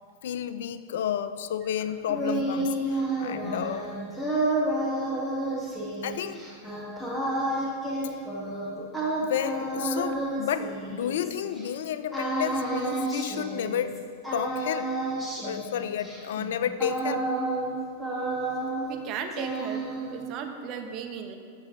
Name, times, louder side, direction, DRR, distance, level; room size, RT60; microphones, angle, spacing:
voice 1, 0.2-3.9 6.0-6.5 9.2-14.0 14.3-14.9 15.4-17.3, left 9 dB, 65° left, 12 dB, 0.3 m, -31 dB
sound 1, 1.8-11.7 12.1-14.0 14.2-17.7 18.0-19.0 19.3-20.3, right 2 dB, ahead, 1.7 m, -30 dB
voice 2, 18.9-19.8 20.1-21.4, right 6 dB, 40° right, 5 dB, 0.8 m, -36 dB
8.4 x 6.2 x 3.7 m, 2.2 s
figure-of-eight pair, 95°, 0 cm